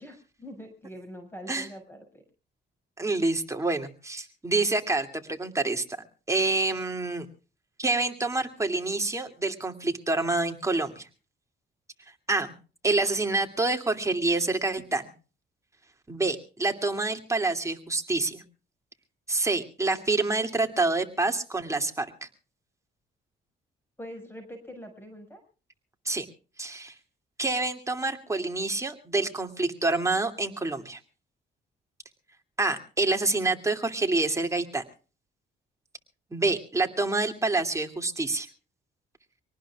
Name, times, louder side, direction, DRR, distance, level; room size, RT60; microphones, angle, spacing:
voice 1, 0.0-2.2 24.0-25.4, equal, 10° left, 6 dB, 5.8 m, -43 dB
voice 2, 3.0-5.8 6.3-7.3 7.8-11.1 12.3-12.5 12.8-15.1 16.1-18.4 19.3-22.3 26.0-26.3 26.6-26.9 27.4-31.0 32.6-34.8 36.3-38.5, right 3 dB, 15° right, 4 dB, 2.6 m, -27 dB
25.5 x 19.0 x 2.4 m, 0.37 s
cardioid pair, 90°, 20 cm